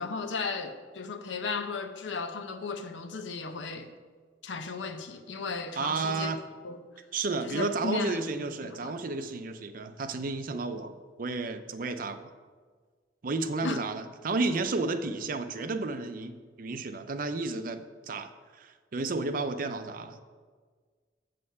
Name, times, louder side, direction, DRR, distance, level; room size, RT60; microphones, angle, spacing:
voice 1, 0.0-3.9 4.4-6.3 6.6-6.8 7.4-8.2 8.6-8.9 13.6-13.8, left 4 dB, 85° left, 8 dB, 0.7 m, -35 dB
voice 2, 5.8-6.4 7.1-12.3 13.2-20.2, right 3 dB, 50° right, 10 dB, 0.5 m, -32 dB
7.6 x 6.5 x 5.6 m, 1.5 s
head